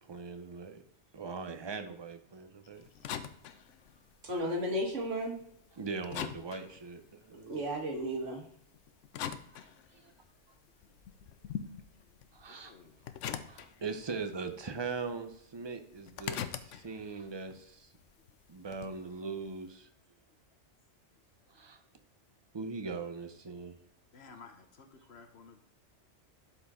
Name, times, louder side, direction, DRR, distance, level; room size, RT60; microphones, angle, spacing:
voice 1, 0.1-0.8 1.1-2.8 5.8-7.6 9.9-10.1 12.3-12.7 13.5-17.9 18.5-19.9 21.5-21.8 22.5-23.7, right 4 dB, 25° right, 7 dB, 0.7 m, -40 dB
sound 1, 2.8-5.7 6.0-8.1 8.7-10.3 10.7-14.3 14.5-15.4 15.6-19.0, left 9 dB, 85° left, 1.0 m, -42 dB
voice 2, 2.9-3.2 11.2-11.3 12.5-13.0 24.1-25.6, left 5 dB, 65° left, 7 dB, 1.2 m, -55 dB
voice 3, 4.2-5.4 7.5-8.4, equal, 90° right, 1 dB, 1.9 m, -33 dB
11.5 x 4.4 x 3.7 m, 0.73 s
omnidirectional pair, 1.2 m